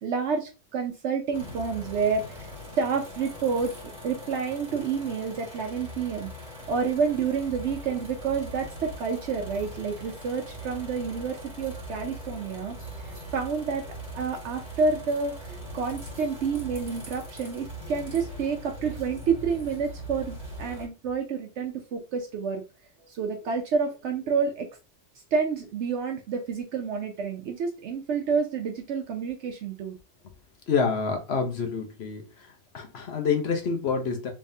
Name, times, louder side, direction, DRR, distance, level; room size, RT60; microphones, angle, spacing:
voice 1, 0.0-3.7 4.0-6.3 6.7-12.7 13.3-13.8 14.1-22.6 23.1-24.7 25.3-30.0, right 5 dB, 70° right, 0.9 m, -29 dB
sound 1, 1.3-20.9, equal, 20° right, 2.2 m, -41 dB
voice 2, 30.7-32.2 32.7-34.3, left 5 dB, 60° left, 0.9 m, -27 dB
3.5 x 3.2 x 2.6 m
omnidirectional pair, 1.3 m